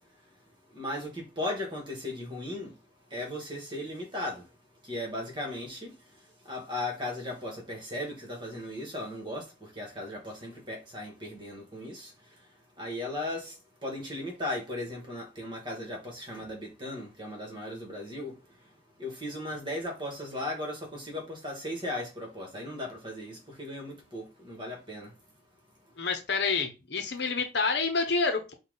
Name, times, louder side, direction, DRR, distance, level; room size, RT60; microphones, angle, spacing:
voice 1, 0.7-2.7 3.1-4.4 4.9-5.9 6.5-9.4 9.8-12.1 12.8-13.5 13.8-18.3 19.0-25.1, left 1 dB, 25° right, 1.4 m, -36 dB
voice 2, 26.0-28.5, left 4 dB, 60° left, 0.9 m, -28 dB
5.5 x 2.4 x 3.9 m
head